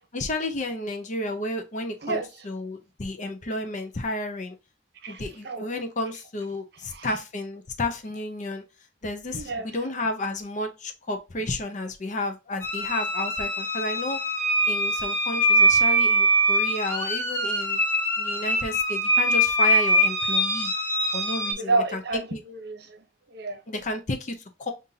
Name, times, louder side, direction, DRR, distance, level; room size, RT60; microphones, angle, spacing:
voice 1, 0.1-4.6 5.1-8.6 9.0-14.2 14.7-17.8 18.2-20.7 21.1-22.0 22.3-22.4 23.7-24.7, left 2 dB, 40° left, 6 dB, 0.6 m, -32 dB
voice 2, 5.0-5.6 6.9-7.2 9.3-9.7 21.6-23.6, right 3 dB, 60° right, 6 dB, 0.8 m, -30 dB
sound 1, 12.6-21.5, right 1 dB, 10° left, 0.8 m, -23 dB
5.4 x 2.6 x 2.7 m, 0.26 s
head